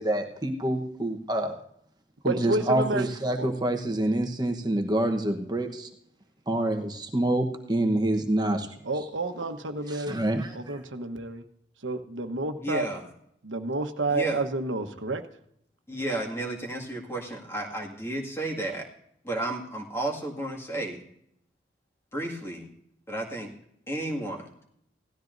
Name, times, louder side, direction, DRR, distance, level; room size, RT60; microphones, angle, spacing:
voice 1, 0.0-1.6 2.2-5.9 6.5-8.7 9.9-10.8, right 1 dB, 20° right, 4 dB, 1.1 m, -27 dB
voice 2, 2.2-3.1 3.4-3.5 8.8-10.2 10.5-11.4 11.8-12.9 13.4-15.2, right 2 dB, 90° right, 6 dB, 1.1 m, -30 dB
voice 3, 12.6-13.1 14.1-14.4 15.9-18.9 19.2-21.0 22.1-22.7 23.1-23.5 23.9-24.5, right 1 dB, 15° left, 0 dB, 2.0 m, -32 dB
17.5 x 13.0 x 2.6 m, 0.71 s
head